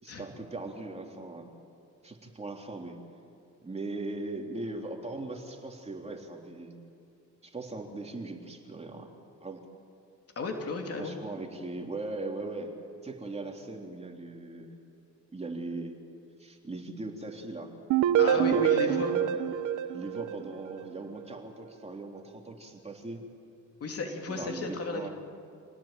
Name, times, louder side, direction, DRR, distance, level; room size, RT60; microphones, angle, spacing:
voice 1, 0.0-1.5 2.0-3.0 3.6-6.7 7.4-9.1 9.4-9.6 11.0-12.8 13.0-14.7 15.3-15.9 16.4-17.7 18.3-19.4 19.9-23.2 24.3-25.1, right 2 dB, 20° right, 1 dB, 3.5 m, -39 dB
voice 2, 10.3-11.2 18.2-19.1 23.8-25.1, left 3 dB, 50° left, 2 dB, 3.4 m, -33 dB
sound 1, 17.9-20.8, right 10 dB, 85° right, 1.2 m, -26 dB
27.5 x 18.0 x 9.1 m, 2.4 s
cardioid pair, 90°, 30 cm